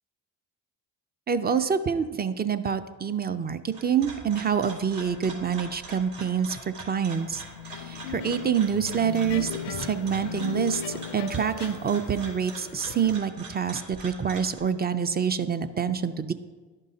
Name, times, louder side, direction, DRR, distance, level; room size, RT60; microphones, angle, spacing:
voice 1, 1.3-7.4 7.7-16.3, right 7 dB, 20° right, 12 dB, 0.4 m, -27 dB
sound 1, 3.5-14.6, right 3 dB, 80° right, 2.4 m, -43 dB
sound 2, 7.3-13.2, left 8 dB, 80° left, 0.6 m, -37 dB
11.5 x 5.3 x 2.7 m, 1.4 s
hypercardioid pair, 50°, 48 cm